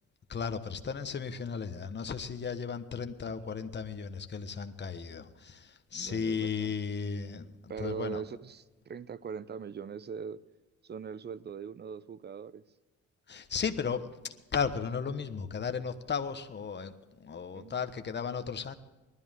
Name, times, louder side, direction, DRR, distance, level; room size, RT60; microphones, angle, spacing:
voice 1, 0.3-7.5 7.8-8.2 13.3-16.9 17.2-18.8, left 6 dB, 35° left, 8 dB, 1.3 m, -35 dB
voice 2, 5.9-6.7 7.7-10.4 10.8-12.6 17.5-17.9, right 6 dB, 35° right, 17 dB, 0.7 m, -41 dB
20.0 x 13.0 x 3.7 m, 1.1 s
cardioid pair, 90°, 30 cm